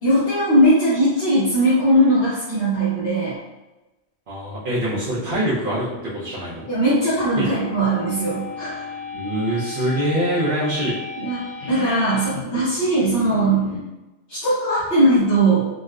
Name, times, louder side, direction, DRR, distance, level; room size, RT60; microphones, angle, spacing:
voice 1, 0.0-3.4 6.7-8.8 11.2-11.4 11.7-13.7 14.3-15.7, right 1 dB, 70° left, -12 dB, 1.1 m, -19 dB
voice 2, 4.3-5.9 6.1-6.7 7.4-7.5 9.1-10.9, right 1 dB, 55° right, -8 dB, 0.8 m, -24 dB
sound 1, 4.7-13.9, left 4 dB, ahead, 1.0 m, -35 dB
4.0 x 2.1 x 2.3 m, 1.0 s
omnidirectional pair, 1.1 m